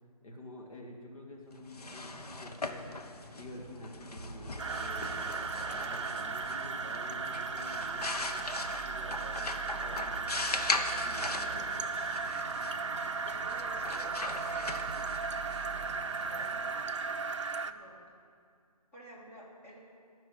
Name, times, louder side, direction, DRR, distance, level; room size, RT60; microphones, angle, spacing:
voice 1, 0.2-2.9 3.4-5.2 5.6-8.5 8.8-10.7 11.0-11.8, left 1 dB, 60° left, -1 dB, 1.9 m, -48 dB
sound 1, 1.6-17.2, left 3 dB, 80° left, 1.2 m, -40 dB
sound 2, 4.2-15.9, right 5 dB, 10° right, 1.1 m, -50 dB
sound 3, 4.6-17.7, right 4 dB, 50° right, 0.5 m, -36 dB
voice 2, 12.8-15.0 15.6-15.9 16.2-16.8 17.6-18.0 18.9-19.8, right 1 dB, 20° left, -5 dB, 2.3 m, -52 dB
15.0 x 6.0 x 9.2 m, 2.5 s
hypercardioid pair, 165°, 20 cm